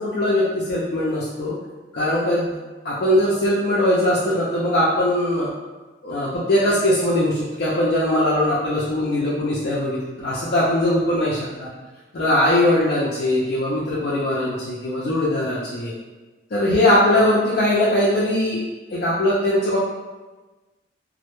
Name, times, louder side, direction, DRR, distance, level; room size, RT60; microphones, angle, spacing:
voice 1, 0.0-1.5 1.9-2.5 2.8-5.5 6.0-11.7 12.1-15.9 16.5-18.6 18.9-19.8, left 1 dB, 60° left, -7 dB, 0.4 m, -20 dB
2.1 x 2.0 x 2.9 m, 1.2 s
head